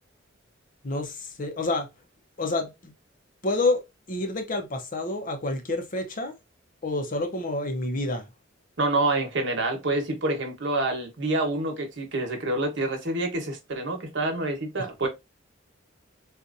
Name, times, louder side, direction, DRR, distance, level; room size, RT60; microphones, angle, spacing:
voice 1, 0.8-1.9 2.4-2.9 3.4-3.8 4.1-6.3 6.8-8.3 15.0-15.1, left 2 dB, 45° left, 0.7 m, -28 dB
voice 2, 8.8-15.1, right 2 dB, 65° right, 1.1 m, -27 dB
4.1 x 2.5 x 2.5 m
head